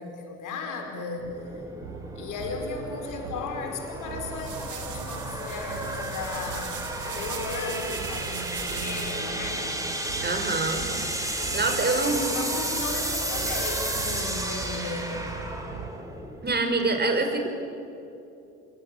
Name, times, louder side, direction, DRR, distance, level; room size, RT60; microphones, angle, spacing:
voice 1, 0.0-1.3 2.2-9.8 11.9-15.2, left 4 dB, 60° left, 3 dB, 5.2 m, -35 dB
sound 1, 1.2-16.6, right 1 dB, 10° right, 4.9 m, -33 dB
sound 2, 1.8-15.9, right 6 dB, 75° right, 2.3 m, -41 dB
sound 3, 3.9-9.3, right 9 dB, 60° right, 3.3 m, -40 dB
voice 2, 10.2-10.8 11.5-12.4 16.4-17.5, right 3 dB, 30° right, 5 dB, 5.7 m, -25 dB
26.5 x 23.5 x 8.9 m, 2.8 s
hypercardioid pair, 65°, 35 cm